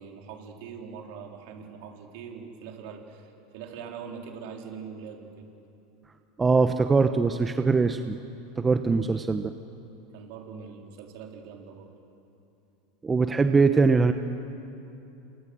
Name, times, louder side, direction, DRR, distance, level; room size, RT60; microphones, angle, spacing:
voice 1, 0.0-5.5 8.9-9.0 10.1-11.9, right 6 dB, 60° right, 2 dB, 4.1 m, -42 dB
voice 2, 6.4-8.2 8.6-9.5 13.0-14.1, right 4 dB, 20° right, 8 dB, 1.1 m, -22 dB
29.5 x 25.0 x 6.4 m, 2.8 s
hypercardioid pair, 90°, 0 cm